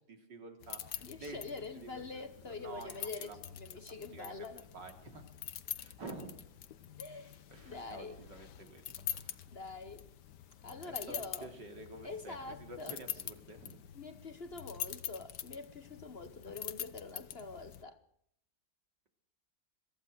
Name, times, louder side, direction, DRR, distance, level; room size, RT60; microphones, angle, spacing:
voice 1, 0.1-1.4 1.8-3.4 3.7-5.2 5.8-6.3 7.5-8.8 9.1-9.4 10.8-13.8, right 2 dB, 85° right, 3.6 m, -50 dB
sound 1, 0.6-17.8, left 11 dB, 75° left, 1.6 m, -46 dB
voice 2, 1.0-4.7 7.0-8.2 9.5-10.1 10.6-11.5 12.0-13.0 13.9-18.0, left 3 dB, 40° left, 1.2 m, -45 dB
23.5 x 14.5 x 7.8 m
omnidirectional pair, 1.9 m